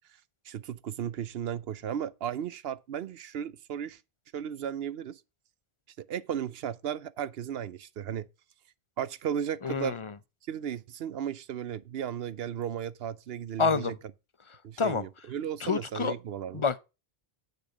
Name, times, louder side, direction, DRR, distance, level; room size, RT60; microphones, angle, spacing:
voice 1, 0.5-4.0 4.3-5.2 6.0-8.3 9.0-10.0 10.5-13.9 14.6-16.6, right 9 dB, 75° right, 0.9 m, -35 dB
voice 2, 9.6-10.1 13.6-14.0 14.8-15.0 15.6-16.1 16.5-16.8, left 5 dB, 35° left, 0.5 m, -27 dB
8.3 x 6.6 x 5.0 m
omnidirectional pair, 1.1 m